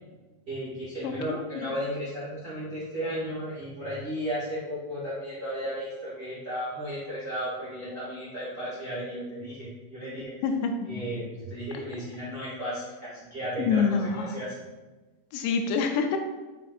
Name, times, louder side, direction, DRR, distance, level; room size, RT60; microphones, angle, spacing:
voice 1, 0.5-10.3 10.9-13.8 14.1-14.5, equal, 35° right, -10 dB, 1.4 m, -34 dB
voice 2, 1.0-1.7 10.4-10.7 13.6-14.4 15.3-16.2, left 5 dB, 85° left, 5 dB, 2.8 m, -26 dB
7.0 x 6.0 x 2.5 m, 1.2 s
omnidirectional pair, 5.0 m